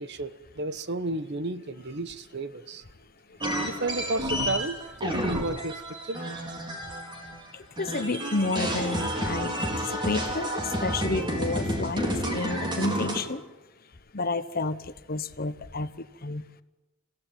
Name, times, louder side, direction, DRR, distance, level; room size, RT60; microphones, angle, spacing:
voice 1, 0.0-2.8 3.6-6.5, right 2 dB, 55° right, 1.2 m, -32 dB
sound 1, 3.4-7.5 7.8-13.2, equal, 20° right, 4.6 m, -30 dB
voice 2, 7.5-13.4 14.1-16.4, left 3 dB, 45° left, 1.0 m, -31 dB
28.5 x 17.0 x 9.2 m
head